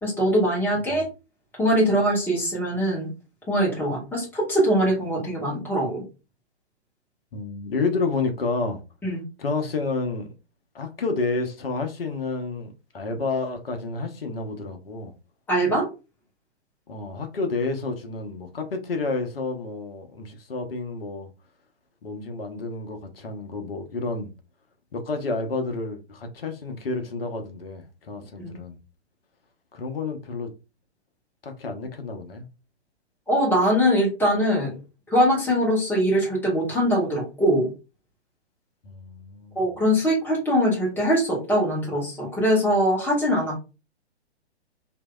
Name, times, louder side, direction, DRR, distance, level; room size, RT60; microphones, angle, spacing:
voice 1, 0.0-1.1 1.6-3.1 3.5-6.0 9.0-9.2 15.5-15.9 28.4-28.6 33.3-34.7 35.1-37.7 39.5-43.6, equal, 5° left, 1.2 m, -22 dB
voice 2, 7.3-8.8 9.4-10.3 10.7-15.1 16.9-21.3 22.0-24.3 24.9-28.8 29.7-30.5 31.4-32.5 38.8-39.6, left 3 dB, 60° left, 0.8 m, -30 dB
3.0 x 2.6 x 2.2 m
figure-of-eight pair, 120°, 34 cm